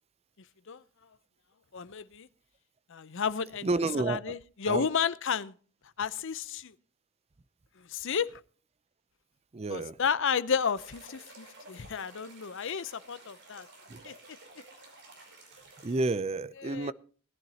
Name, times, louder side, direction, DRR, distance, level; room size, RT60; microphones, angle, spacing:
voice 1, 1.7-2.3 2.9-3.7 4.0-5.5 6.0-6.7 7.8-8.4 9.7-13.7 14.0-14.1 16.6-16.9, left 6 dB, 60° left, 0.6 m, -32 dB
voice 2, 3.6-4.4 4.7-4.9 9.5-10.0 13.9-14.1 15.8-16.9, right 3 dB, 30° right, 0.5 m, -30 dB
sound 1, 10.7-16.1, right 2 dB, 55° right, 5.5 m, -53 dB
20.0 x 11.0 x 2.8 m
head